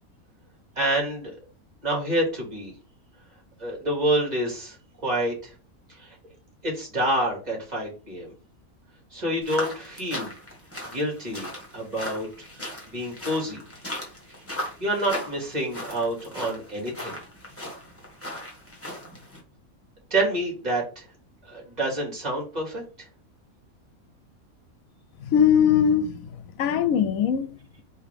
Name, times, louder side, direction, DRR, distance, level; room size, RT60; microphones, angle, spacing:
voice 1, 0.8-1.3 1.8-2.7 3.6-4.8 5.0-5.5 6.0-6.2 6.6-8.3 9.1-10.4 10.8-11.5 11.7-12.3 12.6-13.6 14.8-17.2 20.1-21.0 21.4-22.8, right 1 dB, 30° right, 2.1 m, -27 dB
sound 1, 9.4-19.4, left 1 dB, 10° left, 1.3 m, -37 dB
voice 2, 25.2-26.2 26.6-27.8, left 8 dB, 75° left, 1.0 m, -21 dB
4.8 x 3.2 x 3.3 m
omnidirectional pair, 1.5 m